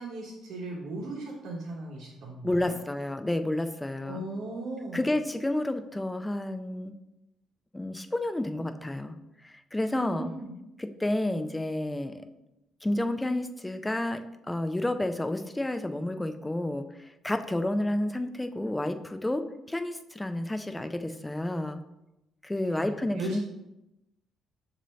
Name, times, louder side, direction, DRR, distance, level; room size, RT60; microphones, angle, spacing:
voice 1, 0.0-2.8 4.0-5.0 9.8-10.5 22.6-23.4, right 2 dB, 70° right, -4 dB, 0.9 m, -37 dB
voice 2, 2.4-4.2 4.9-6.9 7.7-9.1 9.4-10.3 10.8-12.2 12.8-14.2 14.5-21.8 22.4-23.4, left 1 dB, 10° left, 8 dB, 0.3 m, -30 dB
6.5 x 2.6 x 3.1 m, 0.92 s
cardioid pair, 130°, 0 cm